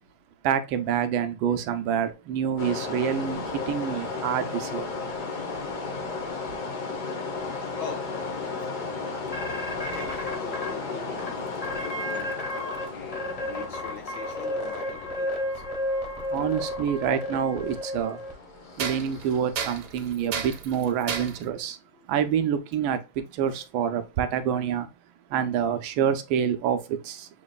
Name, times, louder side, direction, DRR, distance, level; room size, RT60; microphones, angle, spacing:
voice 1, 0.4-4.9 16.3-18.2 18.8-21.8 22.1-24.9 25.3-27.3, right 8 dB, 80° right, 1.4 m, -27 dB
sound 1, 2.6-20.2, left 4 dB, 50° left, 0.6 m, -35 dB
voice 2, 7.8-9.1 9.7-11.4 11.7-12.3 12.6-15.6 22.0-22.1 23.6-23.7, left 6 dB, 75° left, 2.2 m, -42 dB
sound 2, 9.3-10.7 11.2-11.3 11.6-12.8 13.1-18.3, left 1 dB, 25° left, 0.9 m, -32 dB
sound 3, 11.5-12.9 14.1-14.2 16.4-16.5 17.2-17.3 18.7-21.5, right 6 dB, 60° right, 1.3 m, -34 dB
7.0 x 2.9 x 2.2 m
omnidirectional pair, 2.2 m